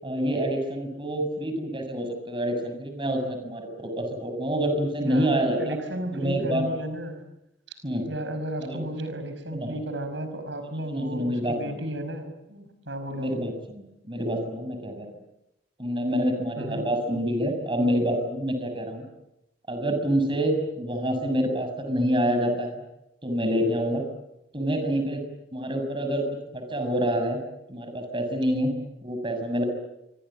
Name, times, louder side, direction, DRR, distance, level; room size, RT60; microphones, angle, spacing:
voice 1, 0.0-5.8 6.1-6.7 7.8-8.0 8.6-8.8 9.5-9.7 10.9-11.8 13.1-15.1 15.8-19.1 19.7-22.8 23.2-24.0 24.5-25.2 25.5-26.2 26.5-27.4 27.7-28.7 29.0-29.6, equal, 30° right, 6 dB, 6.6 m, -27 dB
voice 2, 5.0-7.2 8.1-13.3 16.6-16.9, right 1 dB, 80° right, 8 dB, 5.3 m, -34 dB
27.0 x 24.5 x 8.8 m, 0.88 s
head